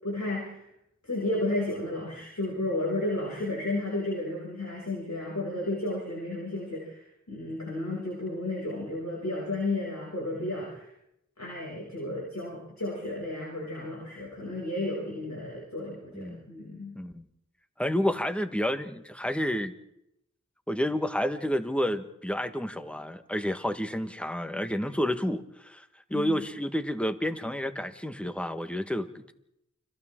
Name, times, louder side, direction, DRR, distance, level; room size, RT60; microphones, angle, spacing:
voice 1, 0.0-0.6 1.0-10.9 11.4-16.9 26.1-26.4, left 2 dB, 70° left, -4 dB, 6.6 m, -33 dB
voice 2, 16.1-16.5 16.9-17.2 17.8-19.7 20.7-25.8 26.1-29.3, equal, 5° left, 8 dB, 1.4 m, -30 dB
30.0 x 25.5 x 3.8 m, 0.81 s
wide cardioid pair, 50°, 29 cm